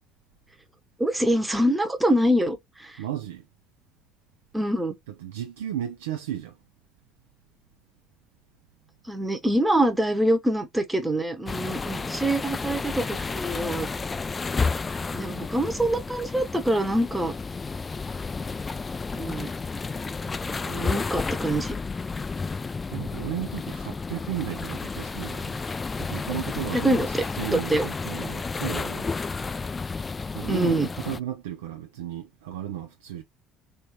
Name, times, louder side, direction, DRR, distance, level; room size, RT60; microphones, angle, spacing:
voice 1, 1.0-3.0 4.5-5.0 9.1-13.9 15.1-17.3 19.1-19.5 20.7-21.8 26.7-27.2 27.5-27.9 30.5-30.9, right 1 dB, 10° right, 0.9 m, -25 dB
voice 2, 3.0-3.5 5.2-6.6 22.9-25.6 26.0-29.1 30.3-33.2, right 11 dB, 85° right, 0.4 m, -34 dB
sound 1, 11.5-31.2, left 4 dB, 30° left, 0.3 m, -31 dB
3.3 x 3.0 x 2.2 m
hypercardioid pair, 60°, 0 cm